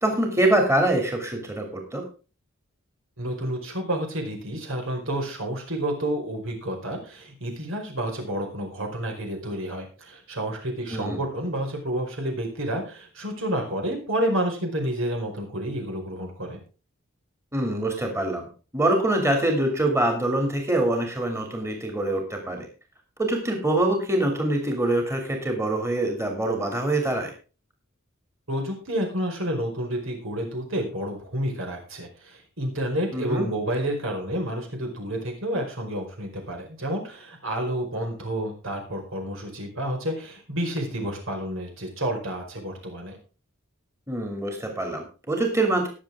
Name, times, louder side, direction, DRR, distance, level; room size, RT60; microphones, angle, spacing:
voice 1, 0.0-2.0 10.9-11.2 17.5-18.5 18.7-22.7 23.2-27.3 33.1-33.5 44.1-45.9, right 1 dB, 15° right, 3 dB, 2.8 m, -24 dB
voice 2, 3.2-16.6 28.5-43.2, right 1 dB, 65° right, 2 dB, 4.9 m, -30 dB
20.0 x 7.4 x 3.7 m, 0.35 s
head